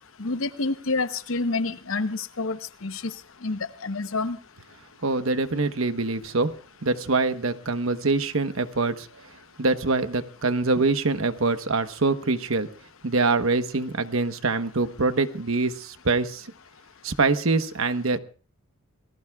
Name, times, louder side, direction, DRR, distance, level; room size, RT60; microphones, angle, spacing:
voice 1, 0.2-3.0 3.4-4.4, left 3 dB, 70° left, 10 dB, 0.9 m, -28 dB
voice 2, 5.0-6.5 6.8-9.1 9.6-12.7 13.0-16.5 17.0-18.2, right 3 dB, 70° right, 9 dB, 1.1 m, -24 dB
27.5 x 19.0 x 2.4 m, 0.39 s
head